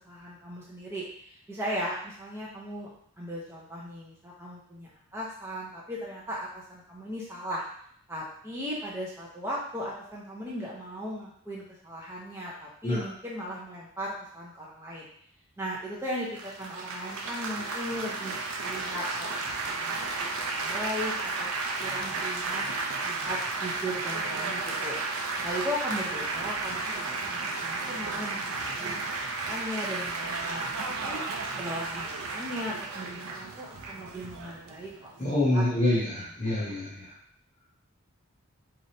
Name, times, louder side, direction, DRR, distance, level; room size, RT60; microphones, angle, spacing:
voice 1, 0.1-1.1 1.5-7.6 8.1-15.1 15.6-20.1 20.5-21.5 21.8-22.7 23.0-25.0 25.4-31.2 31.6-34.9 35.5-35.6 35.9-36.1, equal, 10° right, -5 dB, 0.7 m, -37 dB
Laughter / Applause / Chatter, 16.4-35.5, right 3 dB, 80° right, 0.5 m, -33 dB
voice 2, 35.2-37.1, left 1 dB, 30° left, -7 dB, 0.7 m, -26 dB
3.9 x 3.3 x 2.8 m, 0.65 s
head